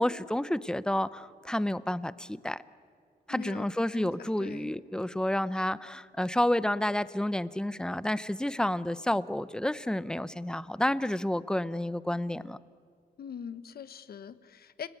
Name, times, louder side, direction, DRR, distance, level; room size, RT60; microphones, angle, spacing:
voice 1, 0.0-2.6 3.3-12.6, left 1 dB, 5° left, 16 dB, 0.8 m, -30 dB
voice 2, 3.3-3.7 3.9-4.7 13.2-14.9, left 7 dB, 65° left, 13 dB, 1.3 m, -42 dB
30.0 x 20.0 x 9.4 m, 2.2 s
cardioid pair, 100°, 17 cm